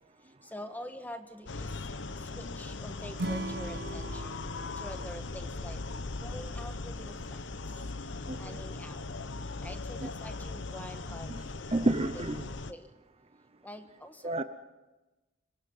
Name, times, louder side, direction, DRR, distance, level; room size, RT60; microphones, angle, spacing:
voice 1, 0.5-1.7 2.3-4.4 4.8-5.8 6.2-7.1 8.4-9.0 9.6-11.3 11.8-11.9 12.5-12.9 13.6-14.4, equal, 10° left, 7 dB, 1.5 m, -45 dB
sound 1, 1.5-12.7, left 3 dB, 70° left, 1.0 m, -39 dB
Acoustic guitar / Strum, 3.2-6.4, right 2 dB, 55° right, 1.0 m, -40 dB
voice 2, 8.3-8.6 10.0-10.1 11.3-11.4 11.7-12.5 14.2-14.4, right 1 dB, 30° right, 10 dB, 0.9 m, -30 dB
27.0 x 23.5 x 5.6 m, 1.1 s
head